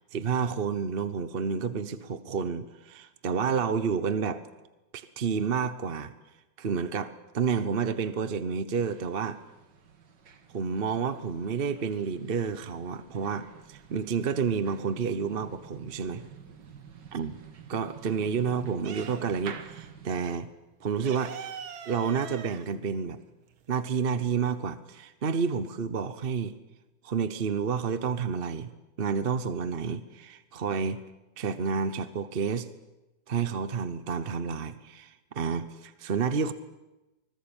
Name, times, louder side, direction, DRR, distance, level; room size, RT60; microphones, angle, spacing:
voice 1, 0.1-4.4 4.9-6.1 6.6-9.4 10.5-16.2 17.1-17.4 17.7-20.5 20.8-21.4 21.9-23.2 23.7-26.6 27.0-28.7 29.0-31.0 31.4-32.7 33.3-36.5, right 6 dB, 40° right, 13 dB, 0.8 m, -30 dB
sound 1, 8.8-20.2, right 7 dB, 65° right, 2.3 m, -49 dB
sound 2, 13.7-14.6 14.9-16.8 17.2-19.6 19.9-20.0 20.3-23.8, right 8 dB, 85° right, 2.2 m, -43 dB
25.5 x 20.0 x 8.9 m, 1.0 s
omnidirectional pair, 2.1 m